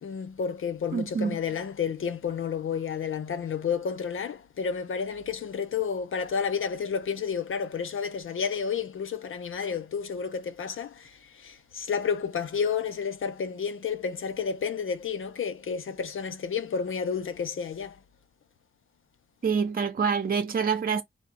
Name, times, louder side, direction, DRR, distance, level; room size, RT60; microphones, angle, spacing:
voice 1, 0.0-18.0, left 6 dB, 75° left, 0.8 m, -31 dB
voice 2, 0.9-1.4 19.4-21.0, right 6 dB, 45° right, 0.7 m, -26 dB
4.4 x 2.4 x 4.1 m
wide cardioid pair, 110°, 21 cm